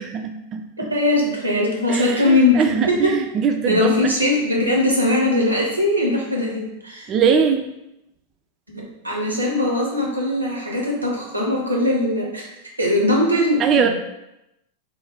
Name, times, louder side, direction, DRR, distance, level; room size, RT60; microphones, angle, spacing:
voice 1, 0.0-0.9 1.9-4.1 7.1-7.6 13.6-13.9, right 6 dB, 30° right, 5 dB, 0.3 m, -21 dB
voice 2, 0.8-3.2 3.6-7.1 8.7-12.5 12.8-13.9, left 1 dB, 85° right, -1 dB, 0.8 m, -20 dB
3.0 x 2.1 x 4.0 m, 0.88 s
figure-of-eight pair, 90°, 0 cm